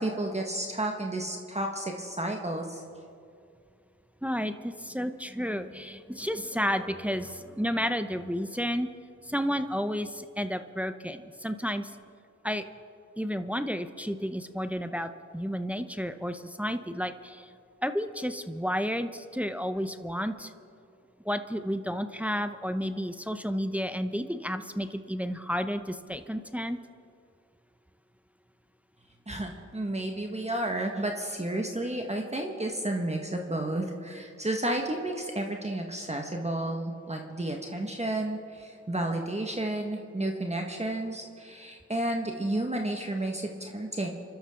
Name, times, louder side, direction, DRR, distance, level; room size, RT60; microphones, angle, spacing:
voice 1, 0.0-2.8 29.3-44.1, right 1 dB, 20° right, 2 dB, 1.7 m, -32 dB
voice 2, 4.2-8.9 9.2-11.9 12.4-12.6 13.2-17.5 17.8-20.5 21.2-26.8, equal, 5° right, 9 dB, 0.8 m, -31 dB
26.0 x 12.0 x 3.8 m, 2.4 s
cardioid pair, 45°, 31 cm